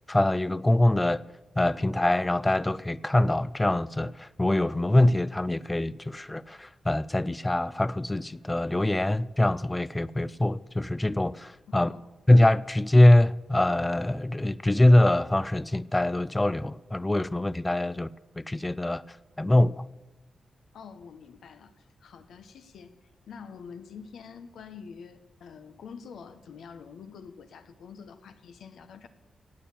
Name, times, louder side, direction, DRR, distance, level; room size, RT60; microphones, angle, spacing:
voice 1, 0.1-1.3 1.6-11.9 12.3-18.1 18.4-19.8, left 1 dB, 15° left, 0.4 m, -23 dB
voice 2, 11.7-12.1 20.7-22.9 23.3-29.1, left 6 dB, 85° left, 1.1 m, -46 dB
17.0 x 8.7 x 7.1 m
wide cardioid pair, 120°, 0 cm